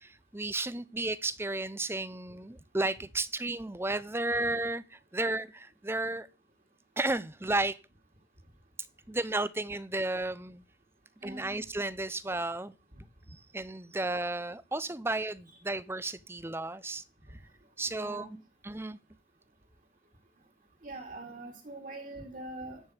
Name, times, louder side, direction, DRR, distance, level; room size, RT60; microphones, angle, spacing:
voice 1, 0.0-6.3 7.0-7.8 9.1-10.6 11.2-12.7 13.5-17.0 17.8-18.4 18.6-19.0, right 2 dB, 15° right, 0.6 m, -33 dB
voice 2, 11.2-11.6 17.8-18.4 20.8-22.8, right 2 dB, 45° right, 2.9 m, -43 dB
12.5 x 5.4 x 8.2 m
head